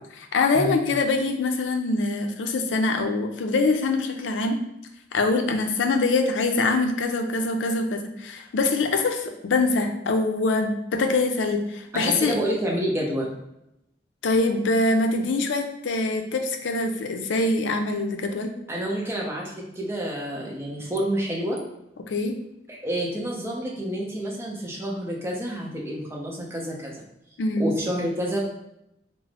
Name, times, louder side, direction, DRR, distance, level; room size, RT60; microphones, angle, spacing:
voice 1, 0.2-4.6 5.1-12.4 14.2-18.6 22.1-22.4 27.4-27.7, left 3 dB, 85° left, 6 dB, 0.4 m, -24 dB
voice 2, 12.0-13.4 18.7-21.6 22.7-27.0 27.6-28.4, right 1 dB, 15° right, -2 dB, 0.6 m, -29 dB
3.6 x 2.0 x 3.3 m, 0.83 s
head